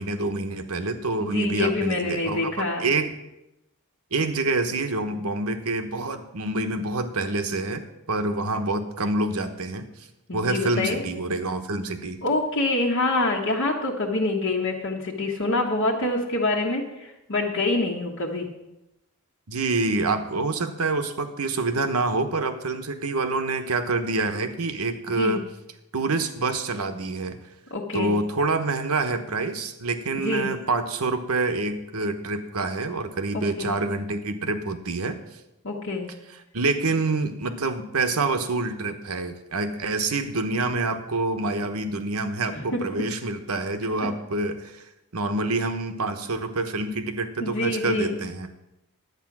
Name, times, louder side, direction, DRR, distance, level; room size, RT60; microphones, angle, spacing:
voice 1, 0.0-3.1 4.1-9.9 10.3-12.2 19.5-25.4 25.9-27.4 27.9-35.2 36.5-44.8 45.1-48.5, right 3 dB, 75° right, 8 dB, 1.1 m, -27 dB
voice 2, 1.2-2.9 10.3-11.0 12.2-18.5 25.2-25.4 27.7-28.2 30.2-30.5 33.3-33.8 35.6-36.1 42.5-42.6 42.9-43.0 47.4-48.2, left 2 dB, 60° left, -3 dB, 1.4 m, -26 dB
11.0 x 8.6 x 6.0 m, 0.91 s
head